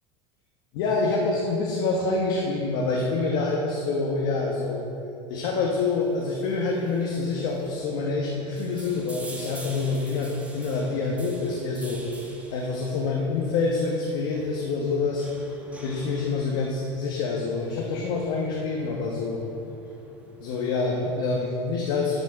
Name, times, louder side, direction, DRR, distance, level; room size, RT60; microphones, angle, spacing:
voice 1, 0.7-4.8 5.3-15.3 15.8-19.4 20.4-22.2, left 3 dB, 70° left, -1 dB, 1.1 m, -26 dB
sound 1, 5.7-21.5, right 1 dB, 10° right, 1.1 m, -48 dB
10.0 x 4.4 x 6.3 m, 2.8 s
supercardioid pair, 120°, 16 cm